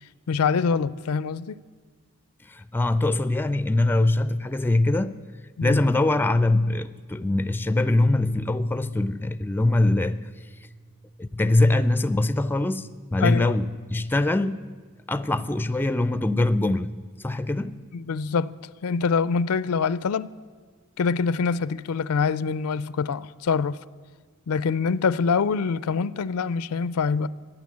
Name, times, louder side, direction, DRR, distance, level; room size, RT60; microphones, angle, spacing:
voice 1, 0.3-1.6 5.6-5.8 13.2-13.5 17.9-18.5 18.8-20.3 21.0-23.8 24.5-27.3, left 5 dB, 85° left, 0.4 m, -25 dB
voice 2, 2.5-5.2 5.6-10.3 11.2-14.7 15.1-16.9 17.2-17.8, left 2 dB, 10° left, 0.4 m, -23 dB
15.5 x 10.0 x 8.5 m
head